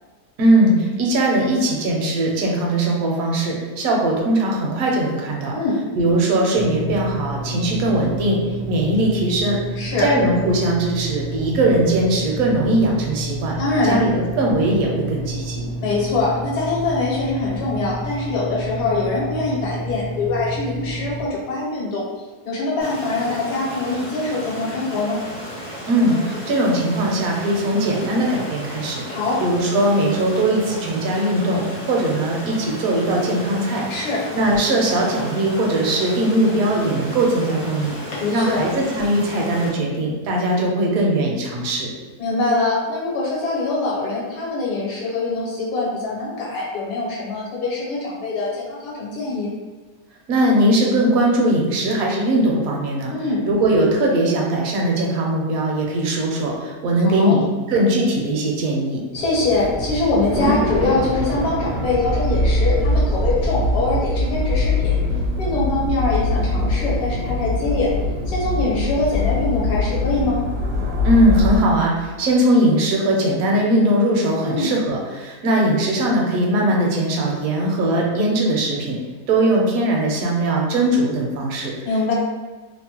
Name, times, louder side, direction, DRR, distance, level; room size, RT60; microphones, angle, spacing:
voice 1, 0.4-5.5 6.0-8.4 8.7-9.6 10.0-13.6 13.9-15.7 25.9-29.0 29.4-33.8 34.3-38.0 38.3-41.9 50.3-53.1 53.4-59.0 71.0-79.0 79.3-81.7, right 1 dB, 70° right, -1 dB, 0.9 m, -20 dB
sound 1, 6.5-21.3, right 2 dB, 85° left, 1.2 m, -30 dB
voice 2, 9.8-10.1 13.6-14.0 15.8-22.0 22.4-25.2 29.0-29.4 33.9-34.2 38.1-38.6 42.2-49.5 53.1-53.4 57.0-57.4 59.1-65.0 65.4-67.9 68.3-70.4 74.4-74.7 81.8-82.1, left 3 dB, 65° left, -5 dB, 1.2 m, -23 dB
Stream, 22.8-39.7, equal, 45° left, 0.4 m, -34 dB
sound 2, 59.2-71.6, left 1 dB, 90° right, 0.6 m, -22 dB
2.9 x 2.0 x 2.8 m, 1.3 s
omnidirectional pair, 1.7 m